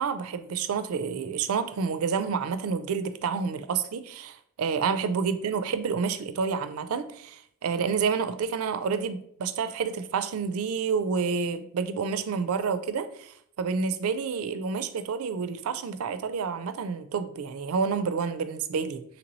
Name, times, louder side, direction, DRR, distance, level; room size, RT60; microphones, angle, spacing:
voice 1, 0.0-19.0, right 5 dB, 90° right, 11 dB, 0.4 m, -29 dB
3.0 x 3.0 x 3.9 m, 0.68 s
head